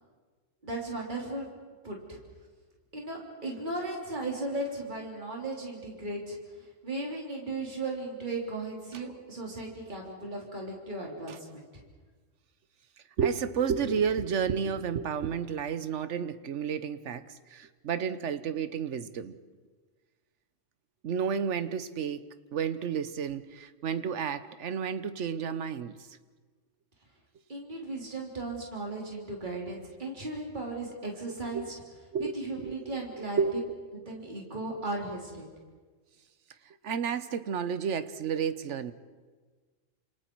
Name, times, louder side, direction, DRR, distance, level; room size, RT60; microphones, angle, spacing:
voice 1, 0.6-1.6 1.8-2.2 2.9-11.8 27.5-31.7 32.3-33.4 34.1-35.5, right 2 dB, 40° right, -2 dB, 3.5 m, -36 dB
voice 2, 13.2-19.4 21.0-22.3 22.5-26.1 31.5-31.7 32.1-33.7 36.7-38.9, right 7 dB, 70° right, 12 dB, 1.2 m, -31 dB
29.0 x 27.5 x 4.6 m, 1.4 s
omnidirectional pair, 1.3 m